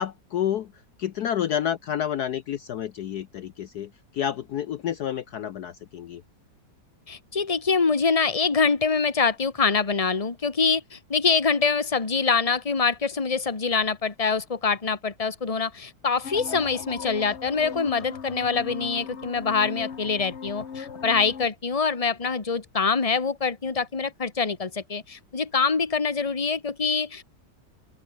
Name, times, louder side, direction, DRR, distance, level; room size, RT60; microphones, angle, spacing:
voice 1, 0.0-6.2, left 10 dB, 65° left, 1.3 m, -29 dB
voice 2, 7.1-27.2, left 5 dB, 20° left, 1.6 m, -25 dB
sound 1, 16.2-21.5, left 6 dB, 40° left, 1.4 m, -38 dB
open air
omnidirectional pair, 2.0 m